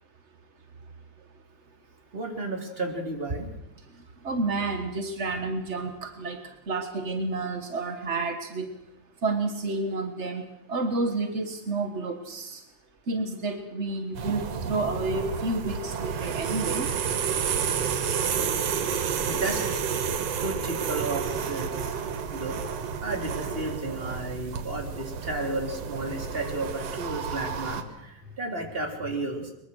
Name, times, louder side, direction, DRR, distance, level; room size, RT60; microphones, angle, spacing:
voice 1, 2.1-3.5 19.2-19.8 20.3-22.0 22.3-22.6 23.0-29.5, right 2 dB, 20° right, 2 dB, 3.3 m, -33 dB
voice 2, 4.2-8.7 9.2-10.4 10.7-12.6 13.1-16.9, right 3 dB, 45° right, 6 dB, 0.9 m, -30 dB
sound 1, 14.1-27.8, right 7 dB, 60° right, 2.4 m, -30 dB
22.5 x 22.0 x 6.4 m, 0.87 s
omnidirectional pair, 3.5 m